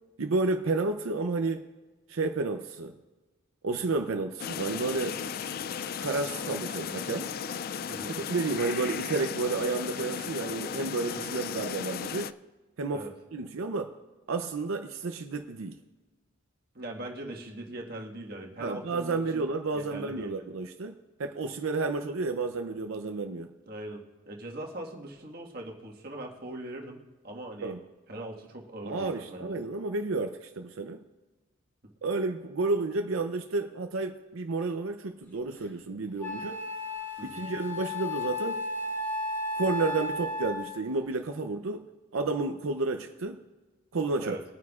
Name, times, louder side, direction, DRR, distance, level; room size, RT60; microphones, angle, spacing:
voice 1, 0.2-1.6 2.1-2.9 3.6-5.2 6.0-7.3 8.1-12.3 12.8-13.1 13.3-13.9 14.3-15.8 18.6-23.5 27.6-27.8 28.9-31.0 32.0-36.6 37.2-38.6 39.6-41.9 42.1-43.4 43.9-44.4, right 3 dB, 90° right, 6 dB, 0.6 m, -31 dB
sound 1, 4.4-12.3, left 7 dB, 45° left, 0.3 m, -35 dB
voice 2, 7.9-8.2 12.9-13.1 16.7-19.4 19.7-20.4 23.6-27.7 28.1-29.6 37.2-37.4 44.2-44.4, right 1 dB, 50° right, 0 dB, 1.6 m, -41 dB
Wind instrument woodwind instrument, 35.6-35.7 36.2-40.9, left 2 dB, 15° left, 2.3 m, -34 dB
22.0 x 9.3 x 2.4 m, 1.3 s
head